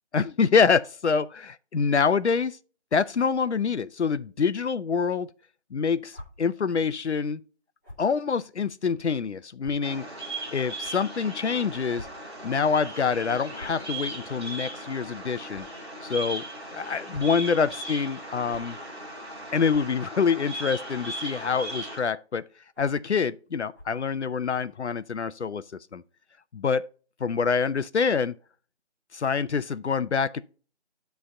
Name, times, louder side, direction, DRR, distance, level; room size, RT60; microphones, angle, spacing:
voice 1, 0.1-2.6 2.9-5.3 5.7-7.4 8.0-10.0 10.5-12.1 12.4-15.7 16.0-16.4 16.7-18.8 19.5-22.4 22.8-25.6 25.9-26.0 26.5-26.9 27.2-28.4 29.1-30.4, left 5 dB, 75° left, 0.6 m, -26 dB
sound 1, 6.1-6.3 7.8-8.1 8.8-8.9 9.6-9.7 10.8-10.9 11.9-12.1 12.4-12.5 13.5-13.8 15.5-15.6 16.9-17.4 18.5-18.6 19.7-19.9 20.6-20.9 21.7-22.0 22.7-23.0 23.7-24.0, left 2 dB, 15° left, 1.4 m, -45 dB
Bird vocalization bird call bird song, 9.8-22.0, right 2 dB, 25° right, 1.7 m, -38 dB
10.0 x 3.4 x 5.3 m
figure-of-eight pair, 175°, 34 cm